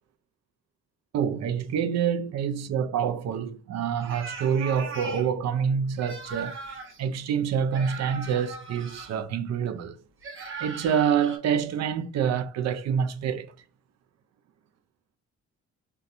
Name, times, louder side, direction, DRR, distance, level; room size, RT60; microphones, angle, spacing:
voice 1, 1.1-6.6 7.0-10.0 10.6-13.5, right 7 dB, 60° right, 0.5 m, -27 dB
sound 1, 4.0-5.3 6.0-7.0 7.7-9.1 10.2-11.4, right 4 dB, 45° right, 0.9 m, -39 dB
4.0 x 2.3 x 2.6 m
cardioid pair, 90°, 30 cm